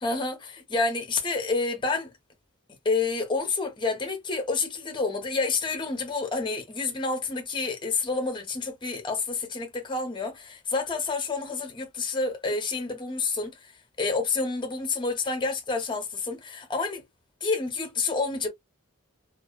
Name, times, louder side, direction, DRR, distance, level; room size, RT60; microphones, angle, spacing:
voice 1, 0.0-2.1 2.8-13.7 14.0-17.0 17.4-18.5, left 4 dB, 25° left, 0.6 m, -29 dB
2.6 x 2.4 x 2.3 m
head